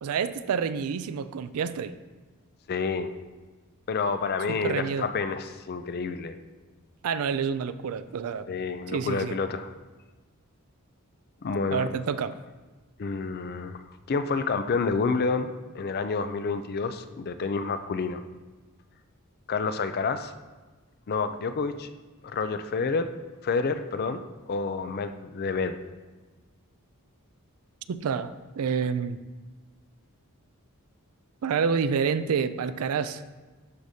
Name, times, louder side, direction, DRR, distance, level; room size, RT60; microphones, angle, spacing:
voice 1, 0.0-1.9 4.5-5.1 7.0-8.5 8.9-9.4 11.7-12.3 27.9-29.2 31.4-33.2, right 6 dB, 80° right, 13 dB, 0.4 m, -28 dB
voice 2, 2.7-3.1 3.9-6.4 8.5-9.7 11.4-11.8 13.0-13.8 14.1-18.2 19.5-20.3 21.1-21.9 22.2-23.1 23.4-24.2 24.5-25.8, left 4 dB, 45° left, 10 dB, 0.4 m, -29 dB
12.5 x 5.0 x 2.7 m, 1.3 s
head